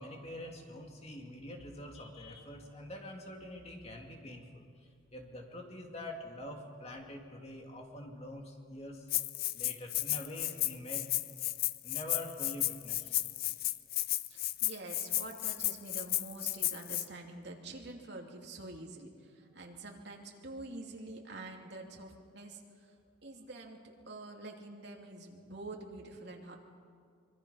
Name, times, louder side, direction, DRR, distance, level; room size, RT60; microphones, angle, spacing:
voice 1, 0.0-4.7 5.1-9.1 9.5-11.0 11.8-13.2, left 1 dB, 30° left, 2 dB, 2.4 m, -45 dB
Rattle (instrument), 9.1-17.0, left 15 dB, 50° left, 0.5 m, -33 dB
voice 2, 14.3-22.9 23.2-26.6, right 2 dB, 60° right, 1 dB, 2.8 m, -47 dB
24.5 x 24.0 x 5.7 m, 2.2 s
head